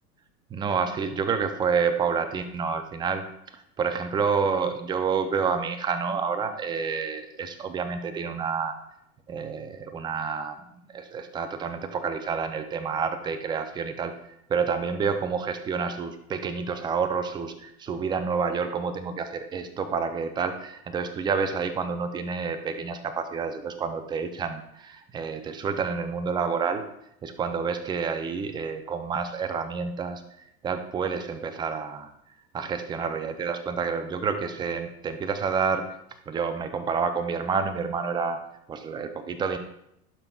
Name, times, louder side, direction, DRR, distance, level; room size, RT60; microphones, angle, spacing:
voice 1, 0.5-3.2 3.5-8.8 9.3-14.1 14.5-26.8 27.2-30.2 30.6-32.1 32.5-35.9 36.3-38.4 38.7-39.6, right 5 dB, 10° right, 8 dB, 0.3 m, -29 dB
11.5 x 5.4 x 2.3 m, 0.76 s
hypercardioid pair, 100°, 46 cm